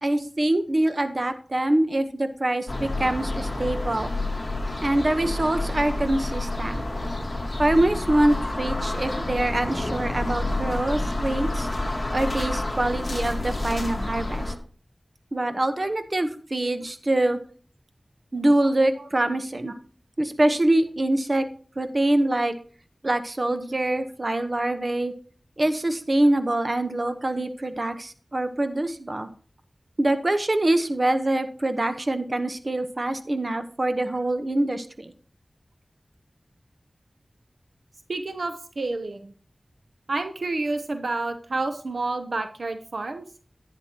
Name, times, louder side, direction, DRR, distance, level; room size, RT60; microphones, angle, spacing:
voice 1, 0.0-4.1 4.8-6.8 7.6-11.7 12.1-14.5 15.3-17.4 18.3-19.7 20.2-21.5 21.8-22.5 23.0-25.1 25.6-29.3 30.0-35.1, right 1 dB, 45° right, 9 dB, 1.0 m, -24 dB
sound 1, 2.7-14.5, left 2 dB, 40° left, 1.6 m, -29 dB
voice 2, 38.1-39.3 40.1-43.3, right 3 dB, 80° right, 8 dB, 0.7 m, -29 dB
11.0 x 9.5 x 2.9 m, 0.43 s
wide cardioid pair, 55°, 0 cm